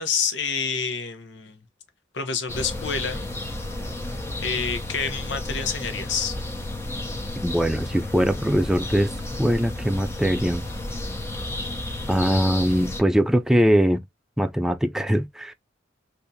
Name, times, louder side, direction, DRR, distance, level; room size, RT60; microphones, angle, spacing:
voice 1, 0.0-1.6 2.1-3.3 4.4-6.4, left 6 dB, 70° left, 0.9 m, -28 dB
sound 1, 2.5-13.0, left 1 dB, 15° left, 0.7 m, -32 dB
voice 2, 7.4-9.1 9.4-10.7 12.1-14.0 14.4-15.5, equal, 5° right, 0.3 m, -21 dB
3.5 x 2.7 x 2.7 m
head